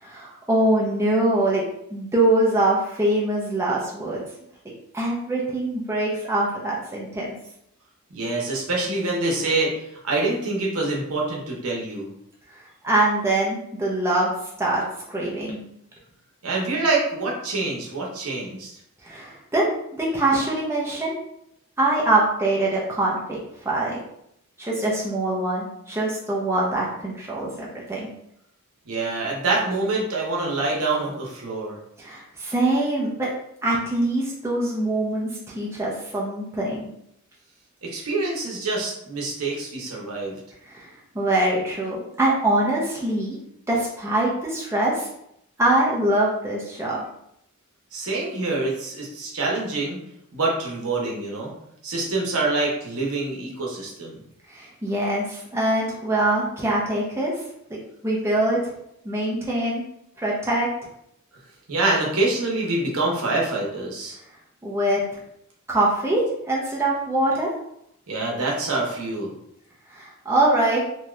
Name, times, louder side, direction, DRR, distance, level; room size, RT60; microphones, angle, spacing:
voice 1, 0.0-4.2 4.9-7.3 12.5-14.3 14.6-14.8 15.1-15.6 19.0-19.7 20.0-21.2 21.8-23.4 23.6-24.0 24.6-28.1 32.0-33.3 33.6-35.3 35.5-36.9 40.6-40.9 41.1-43.4 43.7-45.1 45.6-47.0 54.5-58.7 59.0-59.8 60.2-60.7 64.6-65.2 65.7-67.5 69.9-70.8, right 1 dB, 10° right, -5 dB, 0.6 m, -23 dB
voice 2, 8.1-9.7 10.0-12.1 16.4-18.7 28.9-31.8 37.8-40.4 47.9-50.0 50.3-51.5 51.8-54.2 61.7-64.2 68.1-69.3, right 2 dB, 80° right, -2 dB, 0.9 m, -25 dB
2.8 x 2.4 x 3.1 m, 0.75 s
head